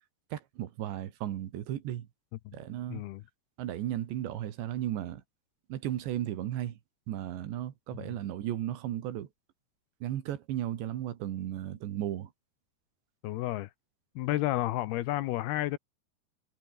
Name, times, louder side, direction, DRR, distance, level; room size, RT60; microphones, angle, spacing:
voice 1, 0.3-2.1 2.5-3.0 3.6-5.2 5.7-6.8 7.1-9.3 10.0-12.3, right 12 dB, 85° right, 4.2 m, -35 dB
voice 2, 2.9-3.2 7.9-8.2 13.2-13.7 14.2-15.8, left 16 dB, 75° left, 2.6 m, -31 dB
omnidirectional pair, 4.9 m